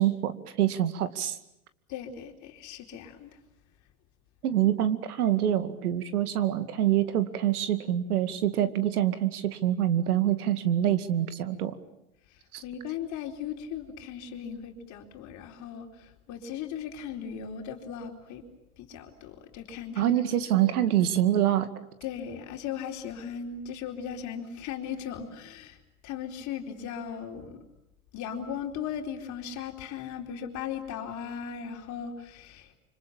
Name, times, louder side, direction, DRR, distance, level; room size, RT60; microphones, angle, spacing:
voice 1, 0.0-1.4 4.4-11.7 12.5-12.6 20.0-21.7, right 12 dB, 80° right, 11 dB, 2.4 m, -25 dB
voice 2, 1.9-3.3 8.6-8.7 12.3-18.4 18.8-20.3 22.0-25.8 26.0-27.6 28.1-32.7, left 8 dB, 40° left, 3 dB, 4.3 m, -37 dB
27.0 x 25.0 x 8.8 m, 0.83 s
hypercardioid pair, 125°, 44 cm